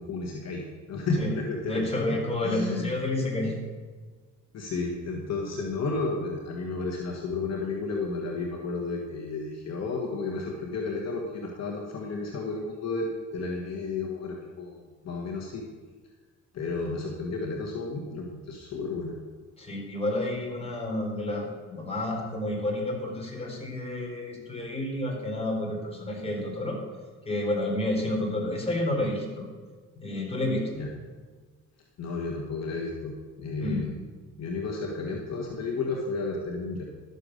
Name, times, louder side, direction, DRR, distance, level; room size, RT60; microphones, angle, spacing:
voice 1, 0.0-2.2 2.4-3.0 4.5-15.6 16.5-19.2 30.8-30.9 32.0-33.9 34.4-36.8, left 3 dB, 60° left, -1 dB, 1.6 m, -32 dB
voice 2, 1.6-3.6 19.6-26.8 27.3-29.5 30.0-30.7 33.6-33.9, left 1 dB, 20° left, -1 dB, 3.8 m, -30 dB
12.0 x 6.9 x 6.6 m, 1.4 s
cardioid pair, 90°, 30 cm